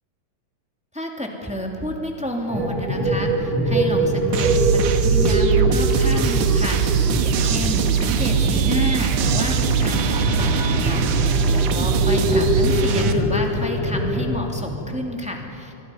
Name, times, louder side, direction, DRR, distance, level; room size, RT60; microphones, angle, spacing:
voice 1, 0.9-15.7, left 1 dB, 5° right, 1 dB, 1.9 m, -30 dB
sound 1, 2.5-14.4, equal, 60° right, 7.7 m, -24 dB
sound 2, 4.3-13.1, right 7 dB, 80° right, 2.5 m, -21 dB
sound 3, 6.3-13.6, right 1 dB, 35° right, 5.9 m, -35 dB
25.5 x 23.5 x 5.6 m, 2.8 s
omnidirectional pair, 3.4 m